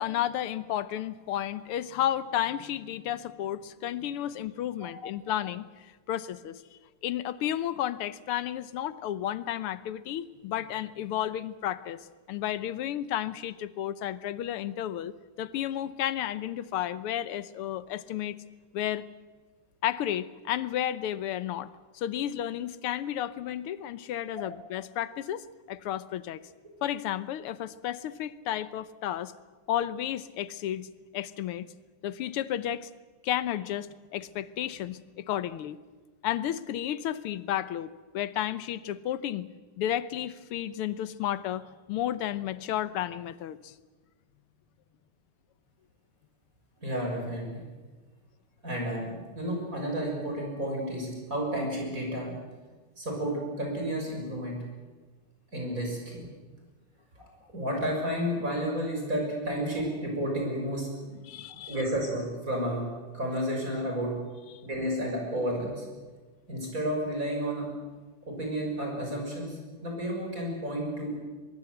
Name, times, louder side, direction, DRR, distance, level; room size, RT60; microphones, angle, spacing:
voice 1, 0.0-12.0 12.3-18.4 18.7-19.1 19.8-21.7 21.9-26.4 26.8-29.3 29.7-30.9 31.1-31.7 32.0-32.9 33.2-35.8 36.2-39.5 39.8-43.7 61.1-61.8, left 11 dB, 90° left, 15 dB, 1.8 m, -32 dB
voice 2, 46.8-47.6 48.6-52.3 53.0-54.6 55.5-56.3 57.1-60.9 61.7-64.1 64.6-65.9 66.5-67.7 68.3-71.2, equal, 40° right, 0 dB, 6.7 m, -31 dB
23.0 x 22.0 x 7.9 m, 1.3 s
omnidirectional pair, 2.4 m